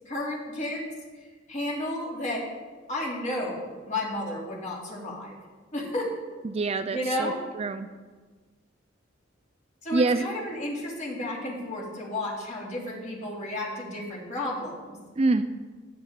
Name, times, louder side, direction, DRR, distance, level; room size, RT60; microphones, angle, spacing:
voice 1, 0.1-0.9 1.2-2.5 2.9-5.4 5.7-6.1 6.9-7.4 9.8-15.0, left 1 dB, 35° left, -3 dB, 2.7 m, -32 dB
voice 2, 6.4-7.3 7.6-7.9 9.9-10.3 15.2-15.4, right 3 dB, 30° right, 9 dB, 0.4 m, -25 dB
15.0 x 8.7 x 3.7 m, 1.4 s
head